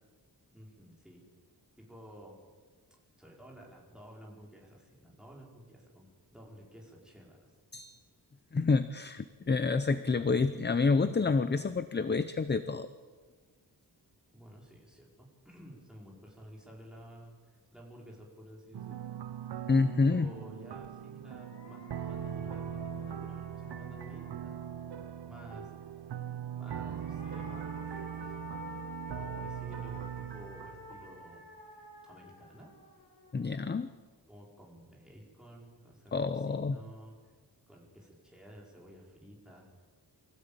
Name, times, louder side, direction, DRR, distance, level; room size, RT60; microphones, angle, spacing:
voice 1, 0.5-1.2 1.8-2.3 3.2-6.0 6.3-7.5 14.3-17.3 17.7-19.0 20.2-24.5 25.3-25.7 26.6-27.9 28.2-28.4 29.2-31.4 32.0-32.7 34.3-37.2 37.7-39.7, equal, ahead, -3 dB, 5.0 m, -52 dB
voice 2, 8.5-12.9 19.7-20.3 33.3-33.9 36.1-36.8, left 4 dB, 25° left, 12 dB, 0.6 m, -28 dB
sound 1, 18.7-31.3, right 9 dB, 75° right, 0.8 m, -41 dB
sound 2, 20.8-20.9 21.3-25.0 26.6-33.9, left 3 dB, 85° left, 5.5 m, -50 dB
24.5 x 16.0 x 8.9 m, 1.5 s
wide cardioid pair, 175°, 41 cm